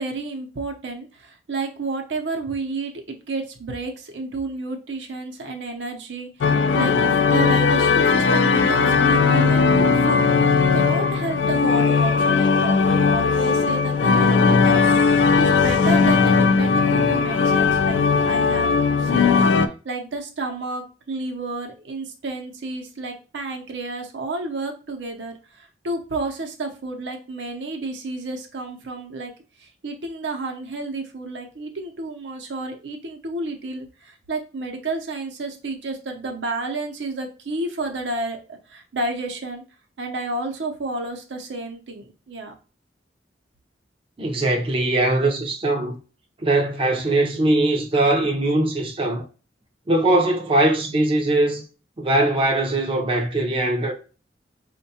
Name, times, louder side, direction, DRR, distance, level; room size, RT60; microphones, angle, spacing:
voice 1, 0.0-10.3 10.5-18.7 19.0-29.3 29.6-39.6 40.0-42.5, right 2 dB, 75° right, 0.6 m, -31 dB
sound 1, 6.4-19.7, left 5 dB, 85° left, 0.3 m, -18 dB
voice 2, 44.2-45.9 46.4-49.2 49.9-51.6 52.0-53.9, right 2 dB, 30° right, 0.5 m, -21 dB
4.4 x 2.2 x 2.7 m
head